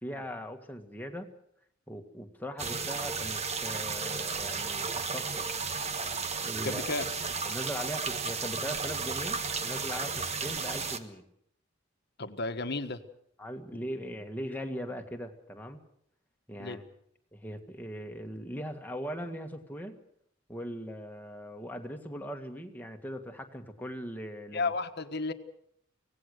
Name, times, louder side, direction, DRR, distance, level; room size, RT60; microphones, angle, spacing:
voice 1, 0.0-1.3 1.9-5.5 6.4-6.8 7.4-11.3 13.4-15.8 16.5-16.8 17.3-20.0 20.5-24.7, equal, 10° left, 4 dB, 1.8 m, -40 dB
sound 1, 2.6-11.0, right 5 dB, 30° right, 1.3 m, -33 dB
voice 2, 6.6-7.1 12.2-13.0 16.6-16.8 24.5-25.3, left 3 dB, 55° left, 8 dB, 1.4 m, -33 dB
25.0 x 18.0 x 6.7 m, 0.69 s
head